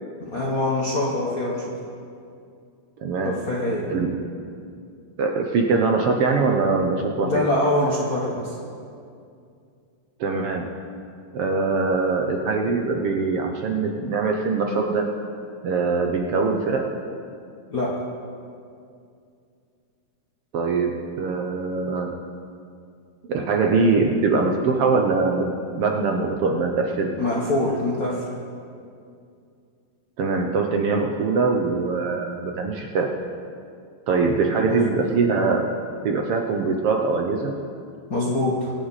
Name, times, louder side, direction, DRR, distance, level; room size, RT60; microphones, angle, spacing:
voice 1, 0.3-1.6 3.2-3.8 7.3-8.6 17.7-17.9 27.2-28.3 34.7-35.1 38.1-38.7, left 1 dB, 50° left, -4 dB, 1.1 m, -24 dB
voice 2, 3.0-3.4 3.9-4.3 5.2-7.4 10.2-10.7 11.3-15.1 15.6-16.9 20.5-22.2 23.3-27.1 30.2-33.1 34.1-35.7 36.0-37.6, right 4 dB, 70° right, 2 dB, 1.5 m, -22 dB
24.5 x 8.3 x 4.1 m, 2.4 s
omnidirectional pair, 3.3 m